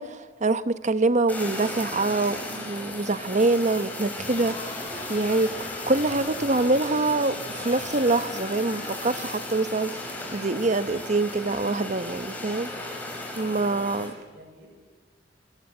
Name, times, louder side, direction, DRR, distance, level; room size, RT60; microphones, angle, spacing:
voice 1, 0.0-5.5 5.9-12.7 13.4-14.1, right 2 dB, 40° right, 1.0 m, -25 dB
Fire, 1.3-14.1, left 2 dB, 10° left, 6.4 m, -36 dB
sound 1, 4.1-9.5, left 2 dB, 40° left, 7.2 m, -40 dB
voice 2, 13.3-14.7, equal, 55° right, 5.7 m, -49 dB
26.0 x 24.5 x 7.9 m
head